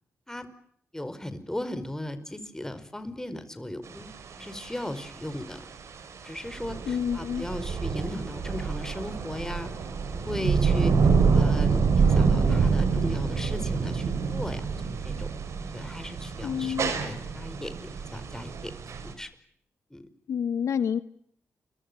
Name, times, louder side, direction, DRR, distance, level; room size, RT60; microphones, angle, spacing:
voice 1, 0.9-4.1 4.3-5.6 6.2-9.7 10.1-10.9 11.3-14.0 14.3-14.6 15.0-15.3 15.6-18.7 19.0-19.3 19.9-20.0, left 1 dB, 10° left, 11 dB, 4.9 m, -37 dB
sound 1, 3.9-19.1, right 5 dB, 75° right, 5.2 m, -26 dB
voice 2, 6.9-7.5 16.4-16.9 20.3-21.0, left 8 dB, 80° left, 14 dB, 1.1 m, -28 dB
30.0 x 24.5 x 6.9 m, 0.64 s
cardioid pair, 70°, 5 cm